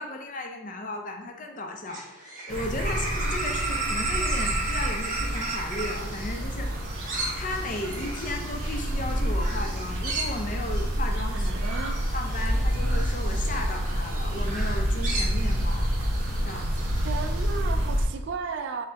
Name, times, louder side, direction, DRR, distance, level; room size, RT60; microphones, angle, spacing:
voice 1, 0.0-11.5 12.1-15.9 16.4-16.9, left 1 dB, 40° left, 3 dB, 0.6 m, -35 dB
sound 1, 1.9-17.6, right 3 dB, 40° right, 1.0 m, -35 dB
sound 2, 2.5-18.0, equal, 80° right, 0.9 m, -28 dB
voice 2, 11.3-12.0 17.0-18.9, right 5 dB, 60° right, 7 dB, 0.3 m, -34 dB
5.5 x 2.2 x 3.8 m, 0.92 s
head